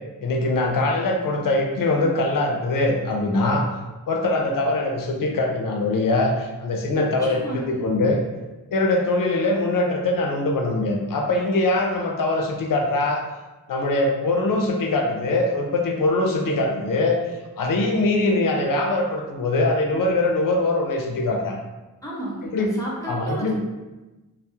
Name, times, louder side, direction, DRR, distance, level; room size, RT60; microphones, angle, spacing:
voice 1, 0.2-3.7 4.1-8.2 8.7-13.2 13.7-17.2 17.6-21.6 22.5-22.7 23.0-23.5, left 2 dB, 75° left, 2 dB, 0.5 m, -22 dB
voice 2, 7.0-7.8 22.0-23.5, right 1 dB, 10° left, -6 dB, 0.4 m, -33 dB
2.2 x 2.0 x 2.7 m, 1.1 s
wide cardioid pair, 135°, 33 cm